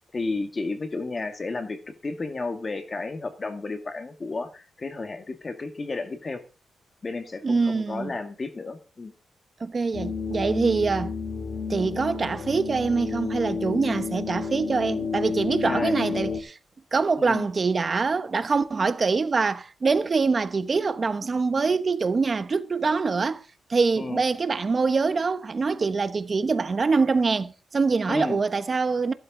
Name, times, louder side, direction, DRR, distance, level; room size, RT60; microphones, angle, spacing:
voice 1, 0.1-6.4 7.0-9.1 15.6-16.0 17.2-17.5 24.0-24.2 28.1-28.4, left 3 dB, 25° left, 2.0 m, -32 dB
voice 2, 7.4-8.1 9.6-11.1 11.7-16.6 16.9-23.4 23.7-29.1, right 4 dB, 30° right, 1.0 m, -24 dB
sound 1, 9.9-16.4, left 5 dB, 60° left, 3.3 m, -31 dB
15.0 x 12.5 x 3.8 m
wide cardioid pair, 170°, 0 cm